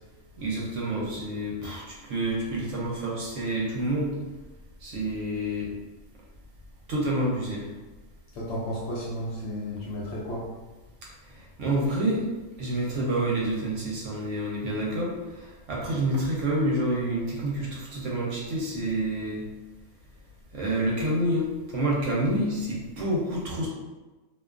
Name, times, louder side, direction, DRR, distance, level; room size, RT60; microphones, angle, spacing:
voice 1, 0.4-4.1 4.8-5.7 6.9-7.7 11.3-12.3 12.6-19.5 20.5-23.7, right 1 dB, 70° right, -4 dB, 0.9 m, -28 dB
voice 2, 8.3-10.5, equal, 65° left, -6 dB, 0.7 m, -33 dB
2.5 x 2.3 x 2.3 m, 1.2 s
omnidirectional pair, 1.5 m